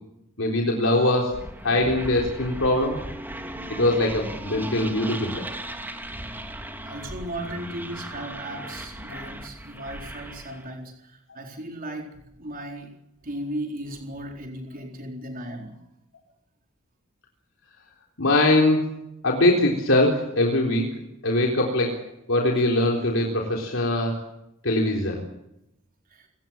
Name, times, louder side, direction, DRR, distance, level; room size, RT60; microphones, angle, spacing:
voice 1, 0.4-3.0 3.7-5.5 9.1-9.2 9.8-9.9 18.2-18.9 19.2-21.0 21.2-22.0 22.3-24.2 24.6-25.2, left 1 dB, 65° left, 0 dB, 4.0 m, -22 dB
sound 1, 1.3-10.7, right 1 dB, 10° right, 3.1 m, -37 dB
voice 2, 6.8-12.1 12.4-12.9 13.2-15.8 26.1-26.3, right 1 dB, 45° right, 1 dB, 4.2 m, -36 dB
29.0 x 18.5 x 7.4 m, 0.85 s
head